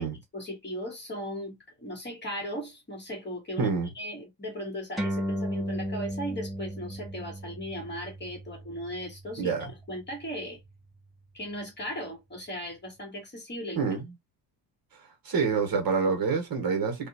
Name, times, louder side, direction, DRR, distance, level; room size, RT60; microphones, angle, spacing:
voice 1, 0.0-10.6 11.3-13.8, equal, 25° left, 1.9 m, -37 dB
voice 2, 3.6-3.9 9.4-9.7 13.7-14.0 15.2-17.1, right 5 dB, 50° right, 1.6 m, -27 dB
sound 1, 5.0-11.8, equal, ahead, 1.4 m, -36 dB
3.1 x 3.0 x 2.9 m
cardioid pair, 115°, 44 cm